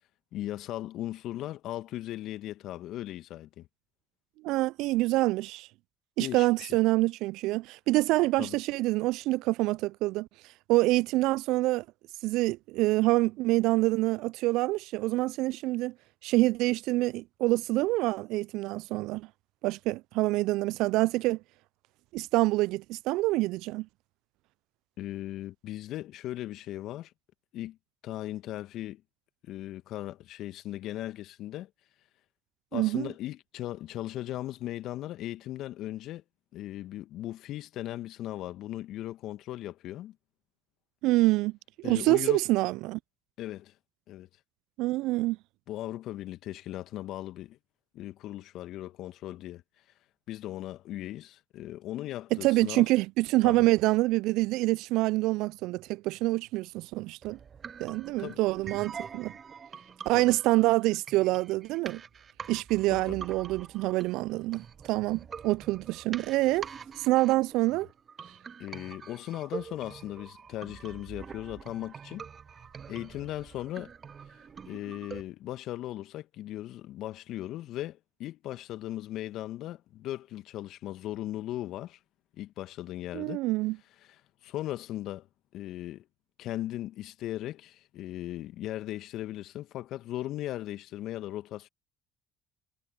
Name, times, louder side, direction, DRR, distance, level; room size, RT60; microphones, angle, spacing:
voice 1, 0.3-3.7 6.2-6.8 8.4-8.6 25.0-27.1 27.5-27.8 28.0-29.0 29.5-31.7 32.7-36.2 36.5-40.2 41.8-42.4 43.4-43.7 44.1-44.3 45.7-47.6 47.9-49.6 50.3-52.9 53.4-53.7 58.2-58.4 60.1-60.3 62.9-63.2 68.6-72.2 72.9-73.9 74.7-82.0 82.4-83.4 84.0-85.3 85.5-86.0 86.4-91.7, left 14 dB, 60° left, 1.7 m, -38 dB
voice 2, 4.4-5.7 6.2-10.3 10.7-11.8 12.2-15.9 16.2-19.3 19.6-21.4 22.1-23.9 32.7-33.1 41.0-41.5 41.8-43.0 44.8-45.4 52.3-57.4 57.8-59.3 60.1-62.0 62.5-66.7 67.0-67.9 83.1-83.8, right 19 dB, 65° right, 0.4 m, -26 dB
sound 1, 57.2-75.2, right 6 dB, 40° right, 2.2 m, -45 dB
hypercardioid pair, 60°, 0 cm